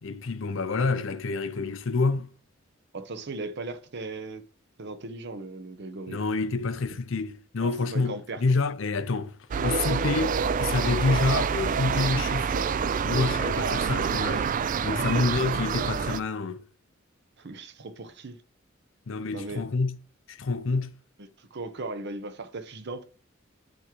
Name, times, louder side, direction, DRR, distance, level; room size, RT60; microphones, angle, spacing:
voice 1, 0.0-2.3 6.1-12.7 13.0-14.5 14.8-16.6 19.1-20.0 20.3-20.9, left 4 dB, 70° left, 0.6 m, -28 dB
voice 2, 2.9-4.4 4.8-6.2 7.6-8.4 13.5-13.9 14.9-15.1 17.4-18.4 19.3-19.6 21.2-23.0, right 3 dB, 60° right, 0.7 m, -37 dB
sound 1, 9.5-16.2, right 6 dB, 40° right, 0.3 m, -27 dB
10.5 x 3.7 x 3.0 m
head